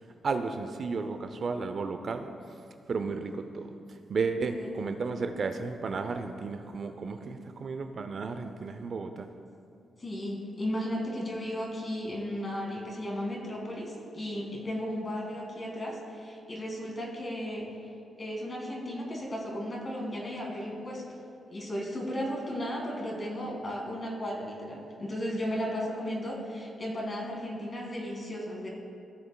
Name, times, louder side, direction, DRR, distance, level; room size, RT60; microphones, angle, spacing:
voice 1, 0.2-2.3 2.9-9.3, right 4 dB, 50° right, 7 dB, 0.4 m, -33 dB
voice 2, 10.0-17.7 18.2-21.2 21.5-28.7, equal, 30° left, -2 dB, 1.9 m, -35 dB
15.5 x 6.9 x 2.2 m, 2.6 s
cardioid pair, 115°, 0 cm